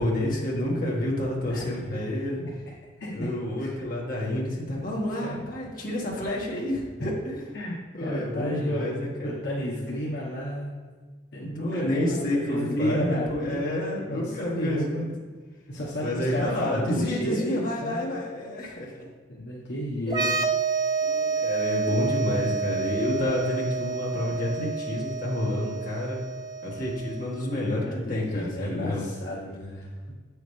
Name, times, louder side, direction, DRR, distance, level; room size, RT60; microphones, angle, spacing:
voice 1, 0.0-2.4 3.1-7.5 7.9-9.4 11.4-15.1 16.0-19.1 21.0-26.2 26.6-29.1, left 1 dB, 50° left, -4 dB, 1.8 m, -29 dB
voice 2, 1.4-2.0 3.0-3.1 3.6-3.7 4.3-4.4 5.2-5.4 7.0-7.1 7.5-10.7 11.3-15.0 15.7-18.1 19.3-20.3 21.4-21.5 23.0-23.2 27.9-30.1, equal, 65° left, -5 dB, 1.2 m, -32 dB
sound 1, 20.1-27.6, right 5 dB, 20° right, 0.4 m, -29 dB
8.4 x 6.5 x 3.3 m, 1.5 s
head